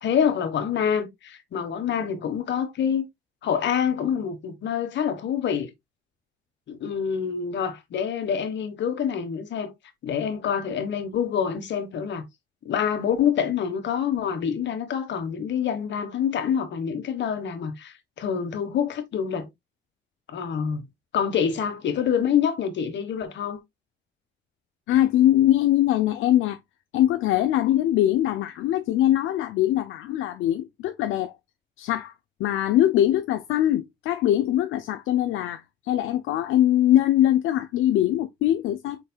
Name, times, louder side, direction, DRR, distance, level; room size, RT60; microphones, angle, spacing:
voice 1, 0.0-3.0 3.4-5.7 6.7-9.7 10.0-12.3 12.6-19.5 20.3-20.8 21.1-23.6, left 8 dB, 65° left, 1.4 m, -26 dB
voice 2, 24.9-26.6 26.9-31.3 31.8-32.1 32.4-39.0, left 12 dB, 85° left, 0.5 m, -22 dB
5.2 x 4.3 x 2.3 m
cardioid pair, 90°, 20 cm